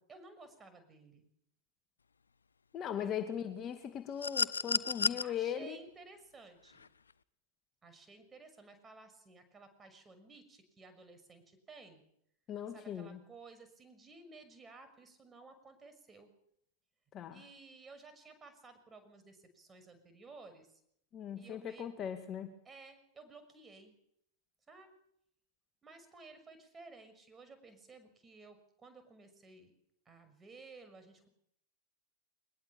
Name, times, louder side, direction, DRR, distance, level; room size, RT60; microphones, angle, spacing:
voice 1, 0.1-1.3 3.0-3.2 5.2-6.8 7.8-12.0 12.7-16.3 17.3-20.8 21.3-21.9 22.6-23.9 24.7-24.9 25.8-29.7 30.0-31.3, right 3 dB, 15° right, 9 dB, 6.2 m, -55 dB
voice 2, 2.7-5.8 12.5-13.2 17.1-17.4 21.1-22.5, left 9 dB, 30° left, 7 dB, 2.3 m, -39 dB
sound 1, 4.2-5.2 6.7-6.9, left 5 dB, 75° left, 0.8 m, -31 dB
23.0 x 21.0 x 7.3 m, 0.72 s
figure-of-eight pair, 90°, 0 cm